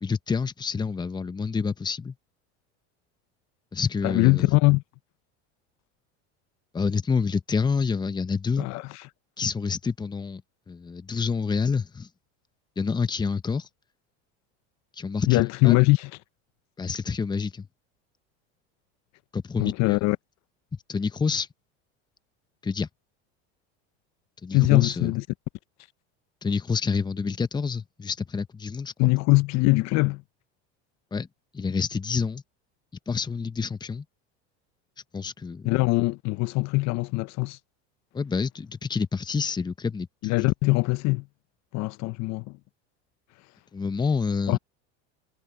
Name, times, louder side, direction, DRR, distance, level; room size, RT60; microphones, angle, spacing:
voice 1, 0.0-2.1 3.7-4.5 6.7-8.7 9.4-10.4 10.7-12.1 12.8-13.7 15.0-15.8 16.8-17.7 19.3-20.0 20.9-21.5 22.6-22.9 24.4-25.1 26.4-29.1 31.1-31.3 31.5-32.4 33.1-34.0 35.1-35.7 38.1-40.3 43.7-44.6, left 5 dB, 15° left, 0.9 m, -28 dB
voice 2, 4.0-4.8 8.6-8.8 15.3-16.1 19.6-20.2 24.5-25.2 29.0-30.2 35.6-37.6 40.2-41.2 41.7-42.5 44.5-44.6, left 22 dB, 55° left, 0.8 m, -22 dB
supercardioid pair, 120°, 33 cm